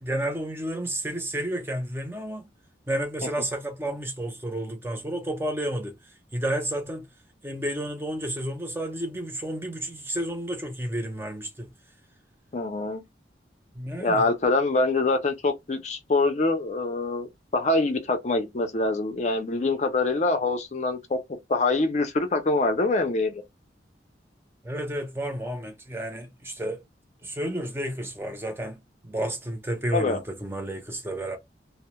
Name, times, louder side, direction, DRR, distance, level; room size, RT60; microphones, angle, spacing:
voice 1, 0.0-2.5 2.9-7.1 7.4-11.7 13.7-14.3 24.6-26.8 27.2-28.8 29.0-31.4, right 1 dB, 10° right, 0.5 m, -31 dB
voice 2, 12.5-13.0 14.0-21.2 21.5-23.4 29.9-30.2, left 3 dB, 40° left, 0.4 m, -24 dB
2.1 x 2.0 x 2.9 m
head